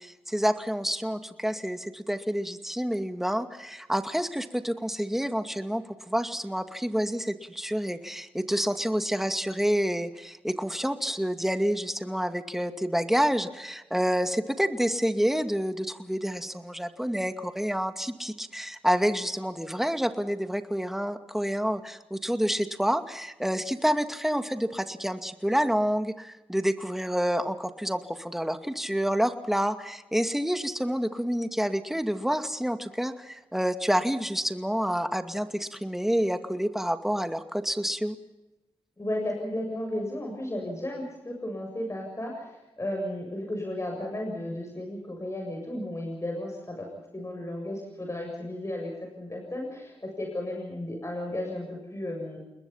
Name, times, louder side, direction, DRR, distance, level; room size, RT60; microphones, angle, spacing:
voice 1, 0.0-38.2, equal, 5° right, 7 dB, 2.3 m, -28 dB
voice 2, 39.0-46.9 47.1-52.4, left 1 dB, 30° left, 1 dB, 7.5 m, -34 dB
29.0 x 21.0 x 5.7 m, 1.0 s
cardioid pair, 50°, 10 cm